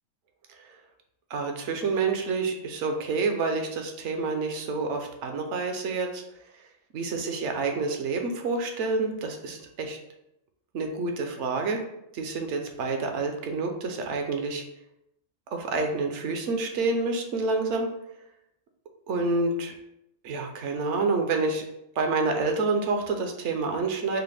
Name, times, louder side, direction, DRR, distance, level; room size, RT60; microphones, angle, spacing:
voice 1, 1.3-6.2 6.9-10.0 10.7-11.8 12.1-14.6 15.5-17.9 19.1-19.8 20.2-21.7 22.0-24.2, right 3 dB, 70° right, 4 dB, 0.9 m, -28 dB
4.8 x 2.1 x 3.2 m, 0.83 s
omnidirectional pair, 1.3 m